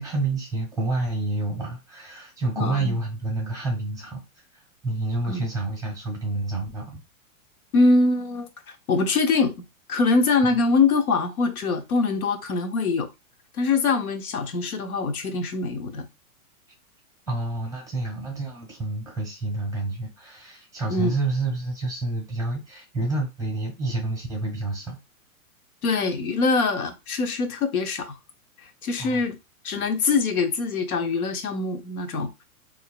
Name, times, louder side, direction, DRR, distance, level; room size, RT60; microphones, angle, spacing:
voice 1, 0.0-4.2 4.5-7.0 17.3-25.0 29.0-29.2, right 2 dB, 10° right, 1.6 m, -29 dB
voice 2, 2.5-3.0 5.2-5.4 7.7-8.5 8.9-9.5 9.9-13.1 13.5-16.1 20.9-21.1 25.8-28.2 28.8-29.4 29.6-32.3, left 3 dB, 85° left, 1.0 m, -23 dB
3.8 x 3.1 x 2.2 m
hypercardioid pair, 130°, 42 cm